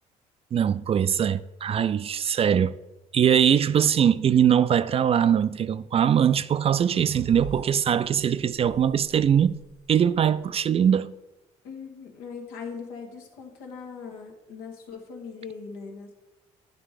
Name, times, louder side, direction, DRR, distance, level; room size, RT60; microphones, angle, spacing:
voice 1, 0.5-2.7 3.1-9.6 9.9-11.1, right 8 dB, 40° right, 0.3 m, -22 dB
sound 1, 6.8-10.0, right 5 dB, 90° right, 1.0 m, -43 dB
voice 2, 11.6-16.1, left 5 dB, 85° left, 1.3 m, -40 dB
9.0 x 3.4 x 4.8 m
supercardioid pair, 65°, 16 cm